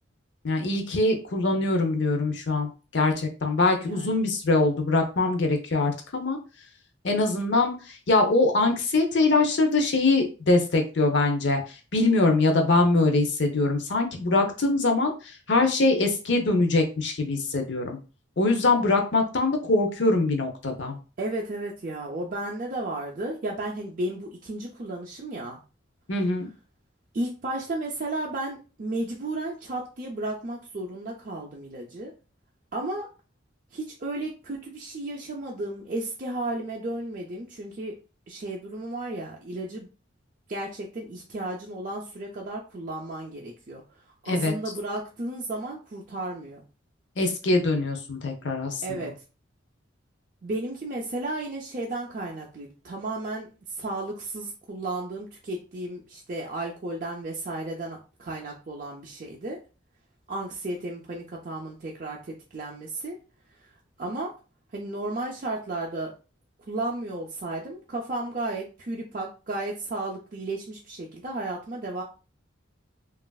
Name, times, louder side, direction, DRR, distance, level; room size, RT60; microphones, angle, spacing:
voice 1, 0.4-6.4 7.0-11.6 11.9-15.1 15.5-18.0 18.4-21.0 26.1-26.5 44.3-44.5 47.2-49.0, left 2 dB, 60° left, 4 dB, 0.6 m, -23 dB
voice 2, 21.2-25.6 27.1-32.1 32.7-33.1 33.7-38.0 38.3-39.9 40.5-43.8 44.2-46.6 48.8-49.1 50.4-59.6 60.3-63.2 63.6-63.7 64.0-64.3 64.7-66.1 66.7-72.0, right 2 dB, 40° right, -2 dB, 0.4 m, -33 dB
3.1 x 2.4 x 2.3 m, 0.33 s
head